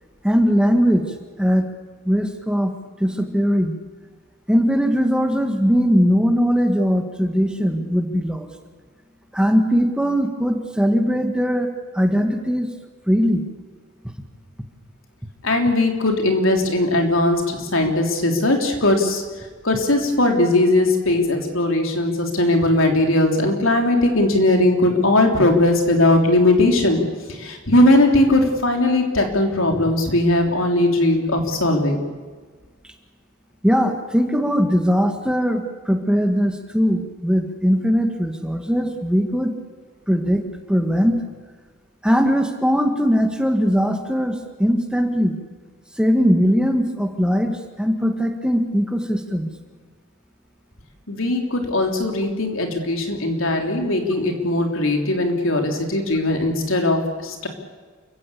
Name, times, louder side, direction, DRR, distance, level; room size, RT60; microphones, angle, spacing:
voice 1, 0.2-1.7 2.0-3.8 4.5-8.5 9.3-12.7 13.1-13.4 14.0-14.1 33.6-39.6 40.1-41.2 42.0-45.4 46.0-49.5, equal, 5° right, 5 dB, 1.6 m, -20 dB
voice 2, 15.4-19.2 19.6-27.0 27.3-32.0 51.1-57.5, left 1 dB, 75° left, 3 dB, 3.6 m, -19 dB
28.5 x 15.5 x 8.5 m, 1.5 s
head